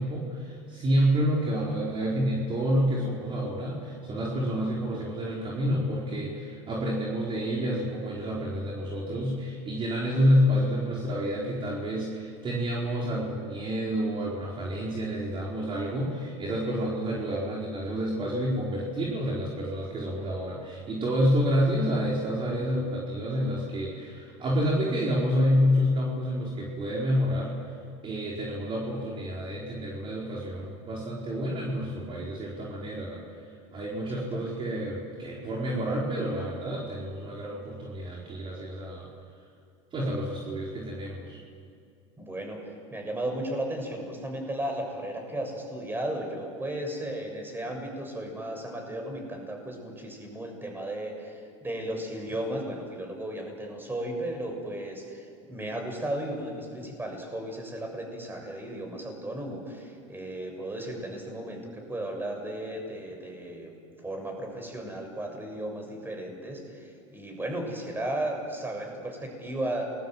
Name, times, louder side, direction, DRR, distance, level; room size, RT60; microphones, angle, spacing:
voice 1, 0.0-27.7 28.0-33.2 33.7-39.1 39.9-41.4, equal, 35° right, -4 dB, 4.8 m, -28 dB
voice 2, 34.1-34.6 42.2-42.6 42.9-63.7 64.0-69.9, right 1 dB, 15° right, 3 dB, 7.0 m, -35 dB
28.5 x 21.0 x 7.7 m, 2.4 s
hypercardioid pair, 95°, 16 cm